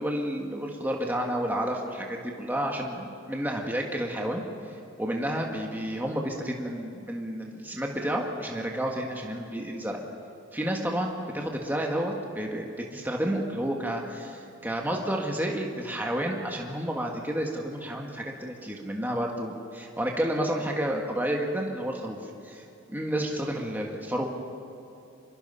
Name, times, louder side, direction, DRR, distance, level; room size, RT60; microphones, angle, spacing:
voice 1, 0.0-4.4 5.0-10.0 10.5-24.3, right 1 dB, 10° right, 0 dB, 1.6 m, -30 dB
25.5 x 22.5 x 5.7 m, 2.8 s
head